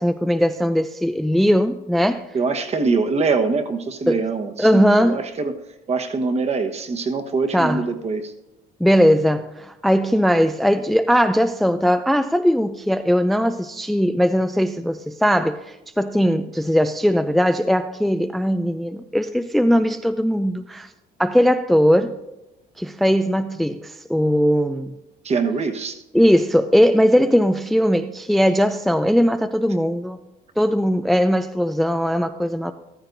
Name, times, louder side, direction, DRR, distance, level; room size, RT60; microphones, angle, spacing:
voice 1, 0.0-2.2 4.1-4.2 4.6-5.2 7.5-7.8 8.8-20.9 21.2-22.2 22.8-24.9 26.1-30.2 30.6-32.7, equal, ahead, 0.4 m, -19 dB
voice 2, 2.3-5.6 5.9-8.3 25.2-26.0, right 4 dB, 40° right, 1.2 m, -23 dB
14.0 x 13.5 x 2.6 m
cardioid pair, 110°, 17 cm